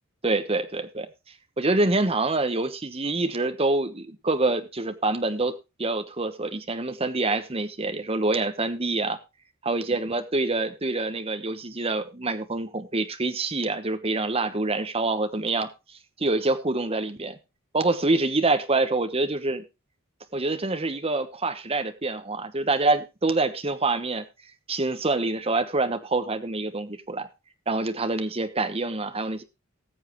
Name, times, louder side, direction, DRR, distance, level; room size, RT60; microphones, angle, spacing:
voice 1, 0.2-1.1 1.6-9.2 9.6-15.7 16.2-17.4 17.7-19.6 20.3-24.2 24.7-27.3 27.7-29.4, right 2 dB, 30° right, 8 dB, 1.1 m, -26 dB
19.0 x 7.5 x 3.1 m, 0.26 s
head